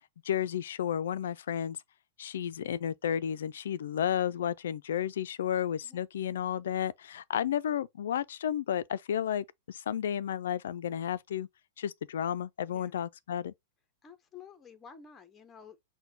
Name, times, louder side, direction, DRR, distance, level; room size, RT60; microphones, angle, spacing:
voice 1, 0.2-1.8 2.2-11.5 11.8-13.5, left 9 dB, 75° left, 0.4 m, -32 dB
voice 2, 14.0-15.8, left 7 dB, 20° left, 0.7 m, -51 dB
5.9 x 2.2 x 3.8 m
hypercardioid pair, 115°, 0 cm